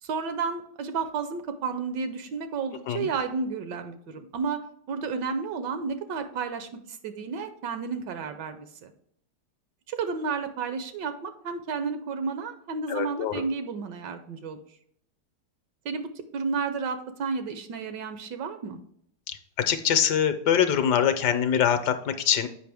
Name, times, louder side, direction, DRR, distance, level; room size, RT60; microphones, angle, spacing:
voice 1, 0.0-8.9 9.9-14.6 15.8-18.8, right 5 dB, 75° right, 9 dB, 1.2 m, -32 dB
voice 2, 12.9-13.4 19.3-19.4 19.7-22.5, left 8 dB, 70° left, 9 dB, 1.1 m, -24 dB
7.8 x 5.2 x 3.4 m, 0.67 s
omnidirectional pair, 2.1 m